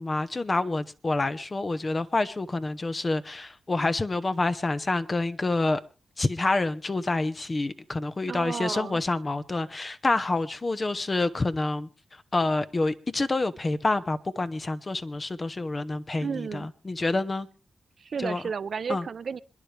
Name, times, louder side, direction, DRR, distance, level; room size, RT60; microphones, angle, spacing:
voice 1, 0.0-5.8 6.2-11.9 12.3-17.5 18.2-18.4 18.9-19.1, left 2 dB, 35° left, 1.1 m, -27 dB
voice 2, 8.2-9.0 16.2-16.7 18.0-19.4, right 6 dB, 65° right, 0.6 m, -32 dB
26.5 x 10.5 x 3.4 m
cardioid pair, 55°, 0 cm